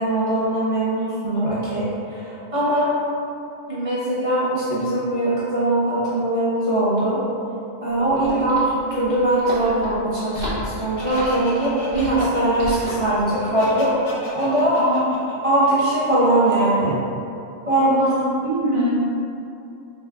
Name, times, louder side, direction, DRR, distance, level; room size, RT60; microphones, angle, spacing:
voice 1, 0.0-2.9 3.7-7.2 7.8-8.6 8.9-13.9 14.3-14.8 15.4-17.0 17.7-17.9, right 1 dB, 35° right, -12 dB, 0.7 m, -21 dB
sound 1, 7.9-13.1, equal, 55° right, 1.1 m, -33 dB
Laughter, 11.0-16.6, left 1 dB, 75° left, 1.0 m, -35 dB
voice 2, 14.8-15.1 17.8-18.9, equal, 40° left, -12 dB, 0.5 m, -24 dB
3.5 x 2.3 x 3.4 m, 2.7 s
omnidirectional pair, 1.3 m